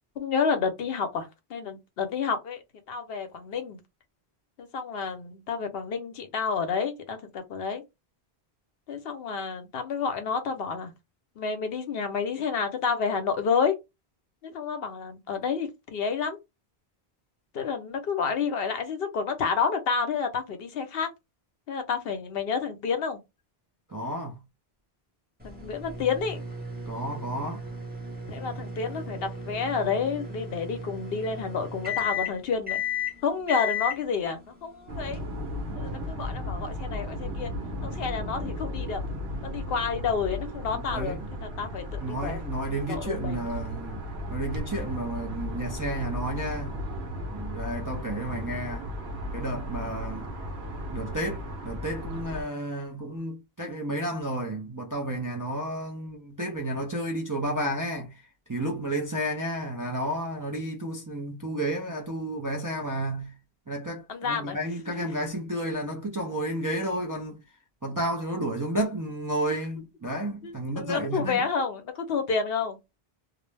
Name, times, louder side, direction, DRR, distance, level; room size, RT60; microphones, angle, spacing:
voice 1, 0.2-2.6 2.9-3.8 4.6-7.8 8.9-10.9 11.4-13.8 14.4-16.4 17.5-21.1 21.7-23.2 25.4-26.4 28.3-32.8 33.2-35.3 35.8-37.5 37.8-39.0 39.4-42.4 42.8-43.4 64.1-64.6 65.0-65.1 69.5-69.6 70.4-72.8, left 5 dB, 70° left, 0.8 m, -30 dB
voice 2, 23.9-24.4 26.9-27.6 40.7-41.3 42.0-44.0 44.3-46.8 47.3-48.9 49.3-50.3 50.9-63.3 63.7-67.4 67.8-71.4, right 1 dB, 30° right, 0.4 m, -32 dB
sound 1, 25.4-35.7, left 5 dB, 10° right, 0.9 m, -35 dB
sound 2, 34.9-52.4, left 1 dB, 85° right, 1.0 m, -35 dB
2.5 x 2.0 x 3.2 m
omnidirectional pair, 1.1 m